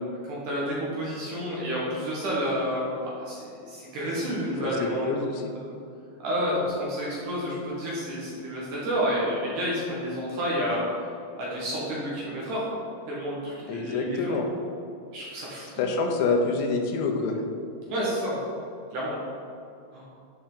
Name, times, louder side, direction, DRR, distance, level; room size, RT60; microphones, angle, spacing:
voice 1, 0.2-3.0 3.3-5.3 6.2-10.8 11.4-12.7 13.1-14.4 15.1-15.9 17.9-18.4 18.9-19.2 19.9-20.0, equal, 60° right, -6 dB, 2.3 m, -30 dB
voice 2, 4.6-5.5 13.7-14.4 15.8-17.4, left 4 dB, 80° left, 3 dB, 3.0 m, -27 dB
11.5 x 5.3 x 3.8 m, 2.5 s
omnidirectional pair, 5.2 m